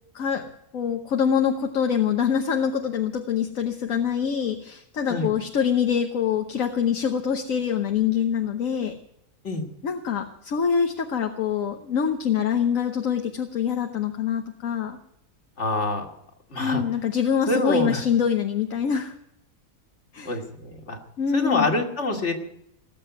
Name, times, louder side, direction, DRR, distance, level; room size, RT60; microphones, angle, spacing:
voice 1, 0.1-8.9 9.8-15.0 16.6-19.1 20.1-20.4 21.2-21.7, left 7 dB, 70° left, 5 dB, 1.4 m, -25 dB
voice 2, 15.6-16.1 16.5-16.8 17.5-18.0 20.2-21.0 21.3-22.3, left 2 dB, 55° left, 3 dB, 2.6 m, -25 dB
18.5 x 7.7 x 9.4 m, 0.76 s
omnidirectional pair, 1.5 m